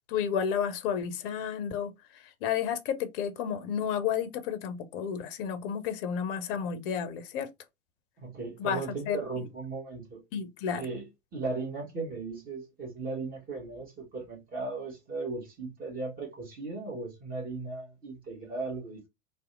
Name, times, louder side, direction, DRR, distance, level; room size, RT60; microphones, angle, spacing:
voice 1, 0.1-7.5 8.6-8.8 9.1-9.2 10.3-10.8, left 8 dB, 45° left, 0.5 m, -31 dB
voice 2, 8.2-10.2 10.7-11.0 11.3-19.1, right 3 dB, 20° right, 1.0 m, -37 dB
2.6 x 2.1 x 2.3 m
figure-of-eight pair, 85°, 39 cm